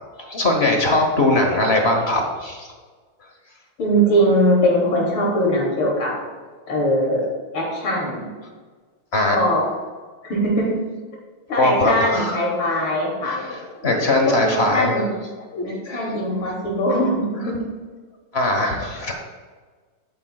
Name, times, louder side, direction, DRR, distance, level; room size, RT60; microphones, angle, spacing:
voice 1, 0.2-2.7 9.1-9.4 11.6-12.4 13.2-15.1 15.5-16.0 18.3-19.1, left 2 dB, 40° left, 2 dB, 1.1 m, -20 dB
voice 2, 3.8-6.2 6.7-7.3 7.5-8.3 9.3-9.7 10.2-10.7 11.5-13.4 14.3-15.1 15.6-17.6 18.9-19.0, equal, 70° left, -3 dB, 3.6 m, -21 dB
11.5 x 9.6 x 2.4 m, 1.4 s
omnidirectional pair, 2.4 m